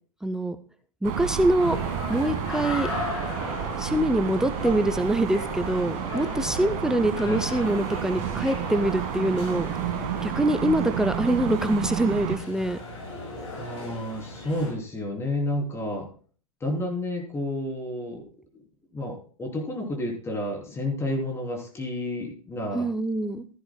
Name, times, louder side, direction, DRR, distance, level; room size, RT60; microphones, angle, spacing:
voice 1, 0.2-0.6 1.0-1.8 2.1-2.9 3.8-9.7 10.2-12.8 22.7-23.4, right 1 dB, 5° right, 9 dB, 0.6 m, -24 dB
sound 1, 1.0-12.4, right 10 dB, 40° right, 1.5 m, -31 dB
sound 2, 1.6-14.7, left 2 dB, 55° left, 6.4 m, -37 dB
voice 2, 7.2-7.7 13.6-16.1 16.6-18.3 18.9-22.9, left 1 dB, 15° left, 1 dB, 3.3 m, -31 dB
15.0 x 10.5 x 2.2 m, 0.43 s
figure-of-eight pair, 110°, 18 cm